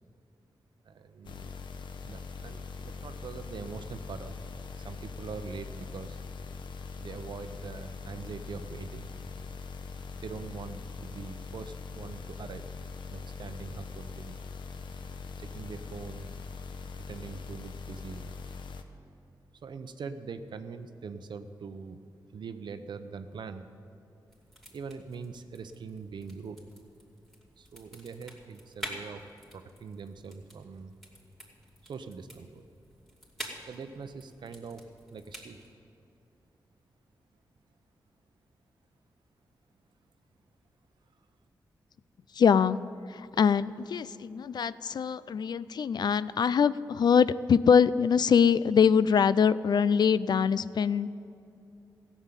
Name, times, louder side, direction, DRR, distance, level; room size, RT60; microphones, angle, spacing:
voice 1, 0.9-1.5 2.0-6.2 7.0-9.1 10.2-12.7 13.1-14.4 15.4-16.3 17.1-18.3 19.6-22.0 22.3-23.7 24.7-26.6 27.6-29.2 29.5-30.9 31.8-32.6 33.7-34.8 35.1-35.6, right 5 dB, 70° right, 9 dB, 0.8 m, -43 dB
sound 1, 1.2-18.8, left 4 dB, 80° left, 0.8 m, -42 dB
sound 2, 24.3-35.7, equal, ahead, 3.1 m, -48 dB
voice 2, 42.3-42.8 43.1-51.1, left 7 dB, 60° left, 17 dB, 0.4 m, -23 dB
15.0 x 7.3 x 9.0 m, 2.7 s
cardioid pair, 70°, 8 cm